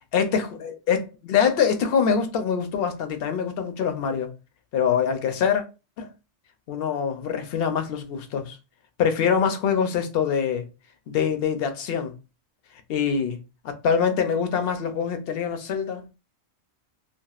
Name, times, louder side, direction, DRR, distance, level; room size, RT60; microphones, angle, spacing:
voice 1, 0.1-4.3 4.7-5.6 6.0-6.1 6.7-8.6 9.0-10.6 11.1-12.1 12.9-13.4 13.6-16.0, left 7 dB, 65° left, 0.8 m, -24 dB
3.4 x 2.4 x 2.4 m
omnidirectional pair, 1.1 m